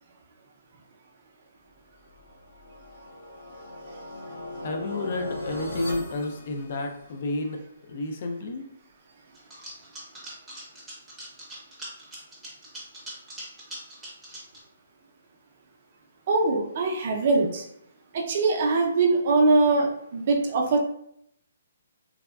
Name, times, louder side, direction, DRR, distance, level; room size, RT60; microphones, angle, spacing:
sound 1, 2.1-7.3, left 1 dB, 85° left, 1.1 m, -39 dB
voice 1, 4.6-7.6 7.9-8.7, left 2 dB, 45° left, 4 dB, 0.4 m, -31 dB
sound 2, 9.3-14.6, right 1 dB, 5° right, 0.6 m, -41 dB
voice 2, 16.3-17.7 18.1-20.8, right 3 dB, 45° right, 1 dB, 0.5 m, -22 dB
3.4 x 2.1 x 2.3 m, 0.74 s
hypercardioid pair, 160°, 0 cm